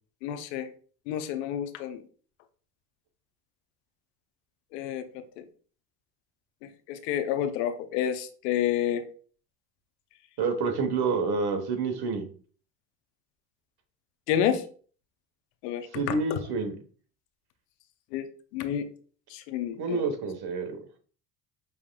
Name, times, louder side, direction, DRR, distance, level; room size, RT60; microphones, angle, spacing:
voice 1, 0.2-0.7 1.1-2.0 4.7-5.1 5.4-5.5 6.6-9.1 14.3-14.6 15.6-16.2 18.1-18.3 18.5-18.9 19.3-20.0, left 10 dB, 75° left, 9 dB, 0.7 m, -29 dB
voice 2, 10.4-12.3 15.9-16.8 19.8-20.8, right 4 dB, 55° right, 7 dB, 1.2 m, -28 dB
5.5 x 3.4 x 2.2 m, 0.42 s
hypercardioid pair, 65°, 48 cm